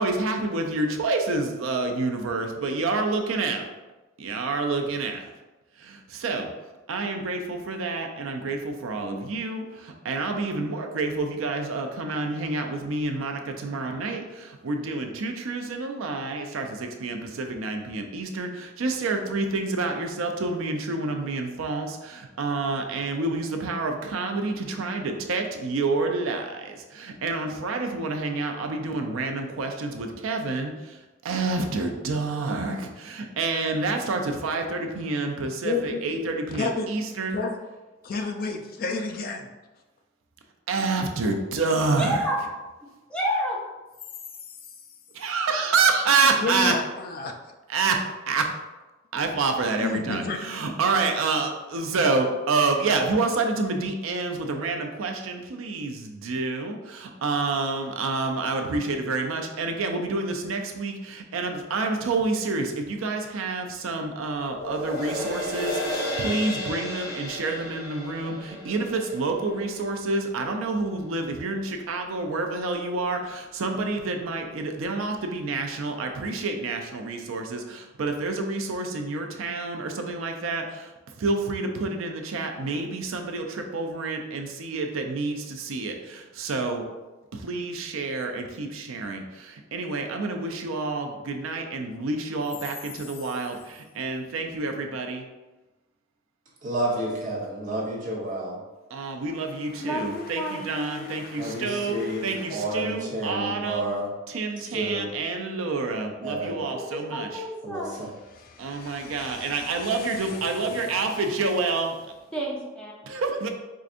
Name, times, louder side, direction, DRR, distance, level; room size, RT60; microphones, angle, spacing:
voice 1, 0.0-3.7 4.2-5.3 5.8-6.5 6.9-37.4 40.7-42.2 45.1-46.7 47.7-48.5 49.1-80.9 81.2-86.9 87.3-95.3 98.9-103.9 104.3-107.4 108.6-112.0 113.1-113.5, right 3 dB, 85° right, 4 dB, 0.5 m, -28 dB
voice 2, 35.6-36.0 36.6-36.9 37.3-37.6 38.0-39.5 46.4-47.3 49.8-50.4 99.7-102.6 108.3-111.2, left 4 dB, 50° left, 4 dB, 0.4 m, -32 dB
voice 3, 41.9-42.4 43.1-43.6 99.8-101.1 106.7-107.9 112.3-112.9, equal, 5° left, -4 dB, 0.7 m, -30 dB
sound 1, 64.5-71.0 71.5-71.6, left 1 dB, 85° left, 1.2 m, -33 dB
voice 4, 96.6-98.6 101.4-104.1 104.6-105.1 106.2-106.6 107.6-108.1, right 1 dB, 40° right, -4 dB, 0.9 m, -30 dB
4.6 x 2.5 x 2.5 m, 1.1 s
head